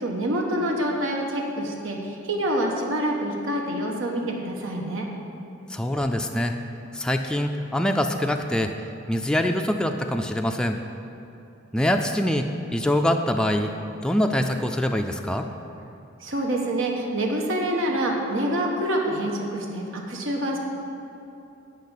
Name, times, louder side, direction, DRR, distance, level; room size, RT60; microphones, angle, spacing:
voice 1, 0.0-5.1 16.2-20.6, right 1 dB, 80° right, 0 dB, 1.3 m, -26 dB
voice 2, 5.7-6.5 6.9-8.7 9.1-10.8 11.7-12.5 12.7-13.7 14.0-15.5, left 1 dB, 5° left, 4 dB, 0.4 m, -24 dB
10.5 x 5.0 x 8.3 m, 2.9 s
head